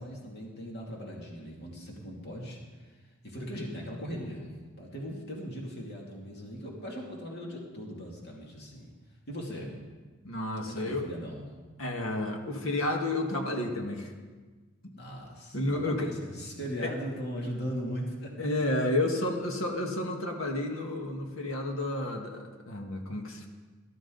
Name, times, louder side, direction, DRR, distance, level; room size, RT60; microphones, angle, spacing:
voice 1, 0.0-3.0 3.2-4.5 4.8-8.9 9.3-9.8 10.6-11.5 14.9-18.5 19.1-19.2, equal, 50° left, -2 dB, 2.6 m, -39 dB
voice 2, 10.2-11.1 11.8-14.1 14.8-14.9 15.5-16.1 16.8-16.9 18.4-23.5, left 1 dB, 65° left, 3 dB, 1.7 m, -31 dB
18.5 x 12.5 x 4.0 m, 1.4 s
head